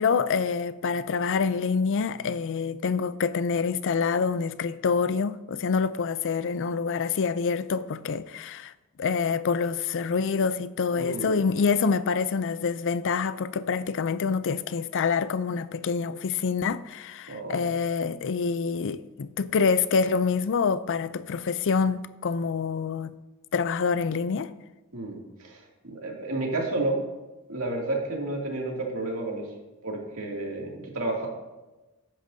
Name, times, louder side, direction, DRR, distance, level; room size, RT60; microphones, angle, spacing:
voice 1, 0.0-8.7 9.0-23.1 23.5-24.5, left 5 dB, 60° left, 0.4 m, -26 dB
voice 2, 11.0-11.3 17.3-17.6 24.9-27.0 27.5-29.5 29.8-31.3, right 2 dB, 65° right, 2.5 m, -31 dB
14.0 x 10.5 x 2.7 m
head